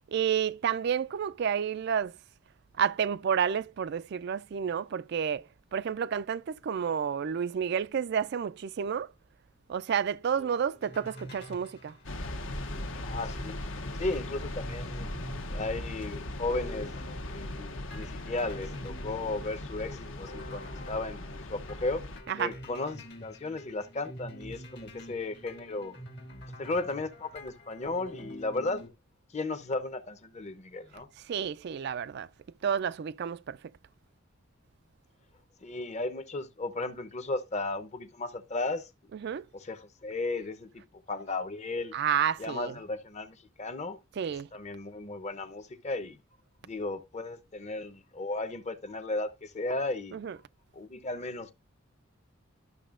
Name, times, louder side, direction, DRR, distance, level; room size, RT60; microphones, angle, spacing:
voice 1, 0.1-2.1 2.8-5.4 5.7-9.1 9.7-11.9 22.3-22.5 31.3-32.3 32.6-33.6 39.2-39.5 41.9-42.7 44.2-44.5 50.1-50.4, right 7 dB, 55° right, 0.3 m, -30 dB
sound 1, 10.3-28.9, equal, 55° left, 1.6 m, -47 dB
sound 2, 12.0-22.2, left 1 dB, 70° left, 1.0 m, -38 dB
voice 2, 13.0-13.5 14.0-15.1 15.5-17.0 17.3-22.0 22.4-26.0 26.6-28.8 29.3-31.1 35.6-38.9 39.5-40.8 41.1-41.9 42.4-46.2 46.6-50.2 50.7-51.5, left 2 dB, 35° left, 0.8 m, -35 dB
12.0 x 6.3 x 2.5 m
head